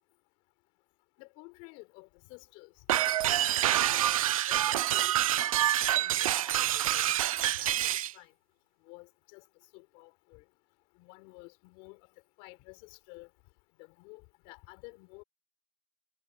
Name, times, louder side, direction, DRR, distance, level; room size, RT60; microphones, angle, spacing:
voice 1, 1.2-5.5 5.7-7.9 8.1-8.3 8.9-9.4 9.7-10.4 11.0-12.0 12.4-13.3 13.8-15.2, left 28 dB, 30° left, 5.5 m, -52 dB
sound 1, 2.9-8.1, right 12 dB, 70° right, 0.6 m, -27 dB
supercardioid pair, 175°, 19 cm